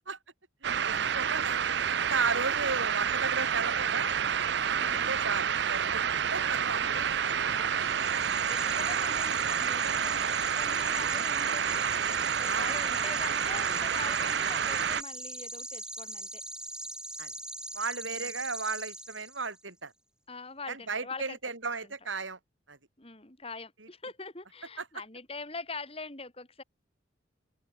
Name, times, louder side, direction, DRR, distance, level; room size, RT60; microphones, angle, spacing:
sound 1, 0.6-15.0, right 8 dB, 60° right, 0.6 m, -29 dB
voice 1, 0.6-1.6 2.1-4.1 4.9-6.0 6.3-7.1 7.8-7.9 8.7-8.9 12.5-12.7 17.2-17.3 17.7-19.9 20.7-22.4 22.7-22.8 24.8-24.9, right 4 dB, 80° right, 4.5 m, -34 dB
voice 2, 4.7-5.1 6.7-7.0 7.5-8.1 8.5-11.7 12.4-16.4 18.0-18.3 20.3-21.4 23.0-26.6, left 3 dB, 30° left, 3.8 m, -43 dB
sound 2, 7.7-19.6, right 1 dB, 5° right, 3.0 m, -41 dB
open air
head